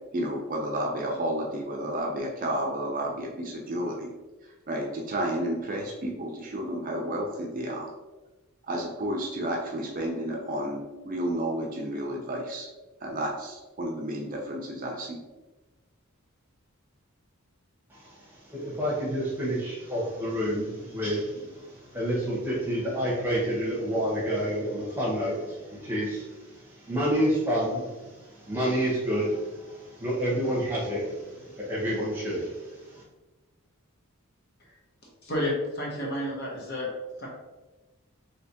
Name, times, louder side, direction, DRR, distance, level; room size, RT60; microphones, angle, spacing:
voice 1, 0.1-4.1 4.7-7.9 8.7-12.7 13.0-15.2, right 1 dB, 40° right, 0 dB, 0.5 m, -31 dB
voice 2, 17.9-33.0, equal, 10° right, -6 dB, 0.9 m, -29 dB
voice 3, 35.2-36.9 37.2-37.3, left 1 dB, 50° left, -3 dB, 0.9 m, -30 dB
3.3 x 2.8 x 2.8 m, 1.1 s
head